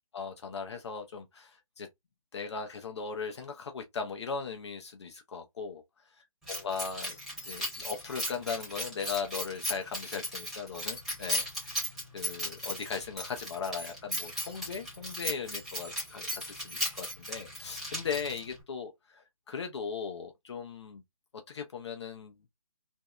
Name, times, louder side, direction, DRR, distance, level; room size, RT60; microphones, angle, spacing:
voice 1, 0.1-1.9 2.3-5.8 6.5-7.2 7.4-11.9 12.1-21.0 21.5-22.4, left 5 dB, 50° left, 0.6 m, -38 dB
Keys jangling, 6.5-18.6, equal, ahead, 0.9 m, -37 dB
2.6 x 2.1 x 2.2 m
figure-of-eight pair, 145°, 18 cm